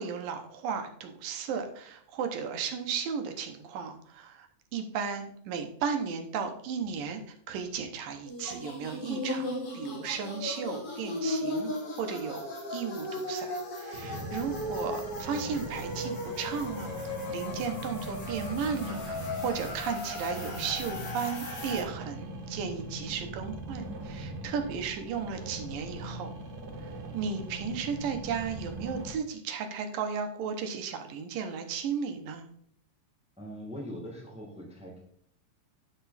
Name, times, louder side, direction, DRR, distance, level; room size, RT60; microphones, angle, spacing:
voice 1, 0.0-11.7 12.0-26.3 26.8-32.4, right 6 dB, 80° right, 5 dB, 2.7 m, -35 dB
sound 1, 8.3-21.8, left 1 dB, 45° left, 2.9 m, -37 dB
sound 2, 13.9-29.1, right 2 dB, 55° right, 1.0 m, -41 dB
voice 2, 33.4-35.0, equal, 5° right, -2 dB, 1.5 m, -41 dB
10.0 x 6.1 x 4.2 m, 0.64 s
omnidirectional pair, 3.9 m